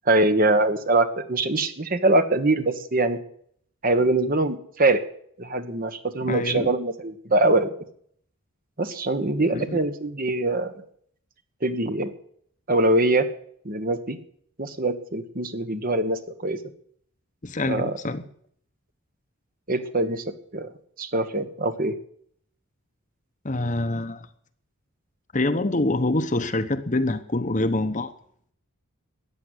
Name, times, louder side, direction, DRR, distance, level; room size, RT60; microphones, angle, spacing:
voice 1, 0.1-3.2 3.8-5.0 5.4-7.7 8.8-10.7 11.6-12.1 12.7-13.3 13.6-14.2 14.6-16.6 17.7-17.9 19.7-20.2 20.5-20.7 21.0-21.9, right 2 dB, 40° right, 9 dB, 1.3 m, -23 dB
voice 2, 6.2-6.7 9.5-9.8 17.4-18.2 23.4-24.3 25.3-28.1, left 2 dB, 35° left, 9 dB, 1.0 m, -25 dB
14.0 x 9.7 x 8.0 m, 0.63 s
head